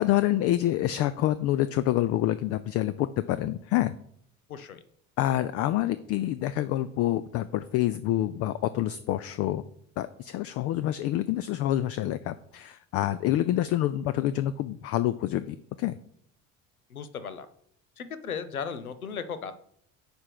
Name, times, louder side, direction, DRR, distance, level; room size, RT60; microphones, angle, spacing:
voice 1, 0.0-3.9 5.2-9.6 10.0-15.9, left 13 dB, 35° left, 14 dB, 0.4 m, -27 dB
voice 2, 4.5-4.8 16.9-17.5 18.0-19.5, left 6 dB, 85° left, 12 dB, 0.7 m, -36 dB
9.5 x 3.4 x 5.9 m, 0.67 s
figure-of-eight pair, 60°, 42 cm